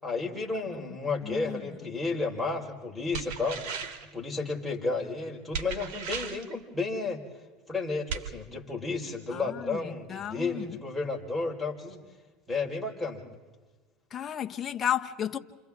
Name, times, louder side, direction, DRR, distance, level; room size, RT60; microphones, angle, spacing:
voice 1, 0.0-3.6 4.1-7.2 7.7-12.0 12.5-13.2, left 3 dB, 5° left, 4.5 m, -32 dB
voice 2, 1.2-1.6 9.3-10.8 14.1-15.4, left 9 dB, 30° left, 1.1 m, -33 dB
sound 1, 3.1-4.1 5.5-6.5 8.1-8.3, right 6 dB, 65° right, 2.3 m, -36 dB
29.5 x 28.0 x 3.6 m
supercardioid pair, 115°, 0 cm